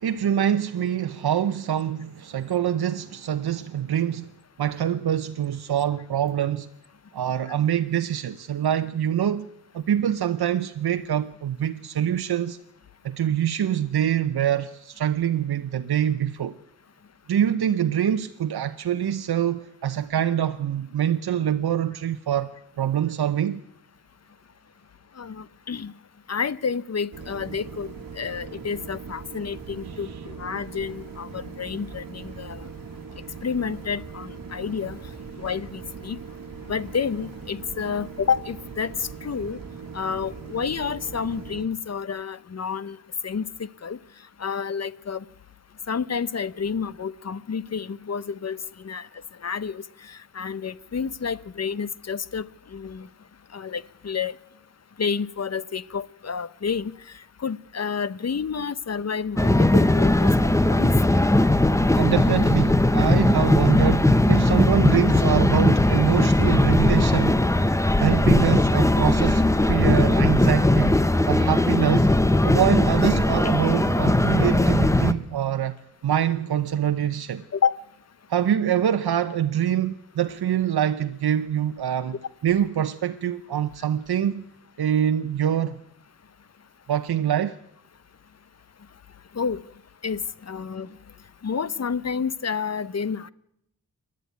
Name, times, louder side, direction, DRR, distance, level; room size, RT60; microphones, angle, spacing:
voice 1, 0.0-4.3 4.6-6.7 7.1-12.6 13.0-16.6 17.3-23.6 29.8-30.2 62.0-72.1 72.4-75.8 76.0-77.4 78.3-82.2 82.4-84.4 84.8-85.8 86.9-87.6, right 10 dB, 85° right, 0.8 m, -25 dB
voice 2, 25.2-25.9 26.3-27.9 28.2-32.7 33.4-35.0 35.4-36.2 36.7-39.6 39.9-43.0 43.2-43.4 43.8-44.0 44.4-45.2 45.9-48.6 48.8-49.1 49.4-53.1 53.5-54.3 55.0-56.9 57.4-60.9 77.5-77.7 89.3-89.6 90.0-90.9 91.4-93.3, left 6 dB, 45° left, 0.7 m, -29 dB
sound 1, 27.1-41.7, right 5 dB, 60° right, 1.6 m, -40 dB
sound 2, 59.4-75.1, left 1 dB, 10° left, 0.8 m, -19 dB
27.5 x 11.5 x 9.4 m
wide cardioid pair, 140°, 37 cm